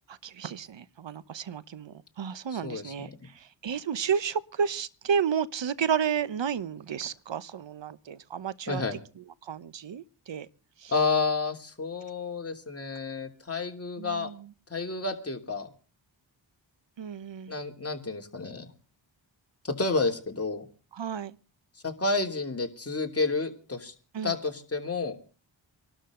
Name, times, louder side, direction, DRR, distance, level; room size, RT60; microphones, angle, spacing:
voice 1, 0.1-10.5 10.8-10.9 14.0-14.5 17.0-17.5 20.9-21.4 24.1-24.3, right 7 dB, 70° right, 1.1 m, -32 dB
voice 2, 2.5-2.9 8.7-9.0 10.9-14.3 14.7-15.7 17.5-18.7 19.6-20.6 21.8-23.9 24.2-25.2, left 3 dB, 30° left, 3.1 m, -30 dB
23.5 x 12.5 x 3.9 m
cardioid pair, 70°, 46 cm